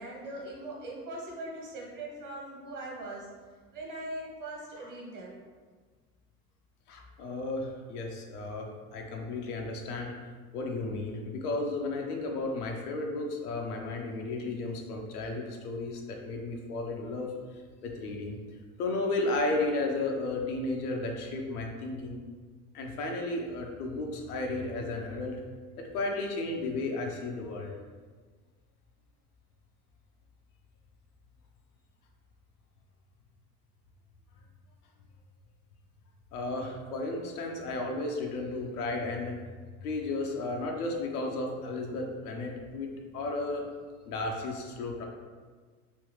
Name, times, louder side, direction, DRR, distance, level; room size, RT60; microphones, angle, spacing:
voice 1, 0.0-3.3 3.7-5.4, right 1 dB, 40° right, -2 dB, 1.3 m, -40 dB
voice 2, 6.9-10.1 10.5-17.3 17.8-18.4 18.8-22.2 22.7-25.4 25.9-27.7 36.3-39.4 39.8-42.9 43.1-43.7 44.1-45.0, left 2 dB, 80° left, 1 dB, 0.7 m, -33 dB
3.3 x 3.0 x 3.1 m, 1.5 s
hypercardioid pair, 70°, 45 cm